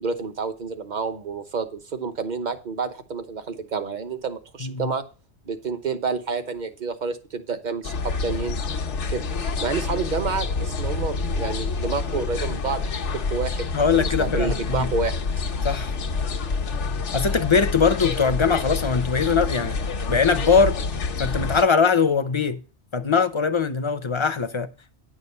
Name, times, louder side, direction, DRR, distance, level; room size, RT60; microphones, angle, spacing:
voice 1, 0.0-5.0 5.4-8.6 9.1-9.3 9.6-12.8 13.1-13.7 13.9-15.1, right 5 dB, 45° right, 1.1 m, -29 dB
voice 2, 4.6-4.9 13.7-14.9 15.6-15.9 17.1-19.8 20.1-20.8 21.2-22.6 22.9-24.7, left 5 dB, 30° left, 0.6 m, -21 dB
sound 1, 7.8-21.6, left 4 dB, 90° left, 1.3 m, -27 dB
10.0 x 6.3 x 5.5 m
omnidirectional pair, 1.2 m